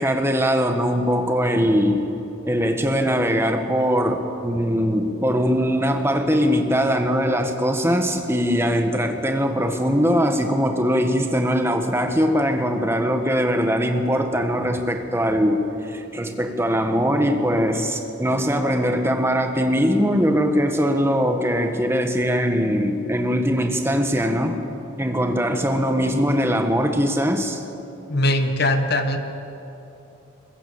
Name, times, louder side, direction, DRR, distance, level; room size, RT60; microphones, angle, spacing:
voice 1, 0.0-2.1 2.4-24.6 25.0-27.6, equal, 10° right, 5 dB, 1.5 m, -21 dB
voice 2, 28.1-29.2, left 1 dB, 50° left, 7 dB, 1.5 m, -20 dB
22.0 x 20.5 x 7.3 m, 2.9 s
head